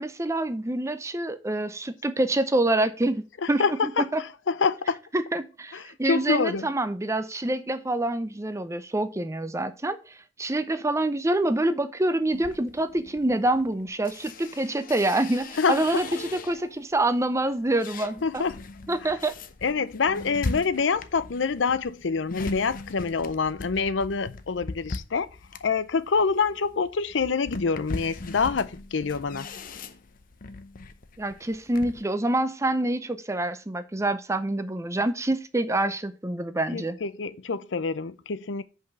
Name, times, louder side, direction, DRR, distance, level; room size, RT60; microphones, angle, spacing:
voice 1, 0.0-4.2 5.1-10.0 10.4-18.4 18.9-19.3 31.2-37.0, right 1 dB, 15° right, 0.6 m, -26 dB
voice 2, 3.6-5.0 5.7-6.7 15.6-16.0 18.2-18.6 19.6-25.3 25.6-29.5 36.7-38.6, left 5 dB, 85° left, 0.6 m, -26 dB
sound 1, 12.3-16.8 17.3-32.0, left 3 dB, 50° left, 0.7 m, -39 dB
6.0 x 5.5 x 6.8 m
head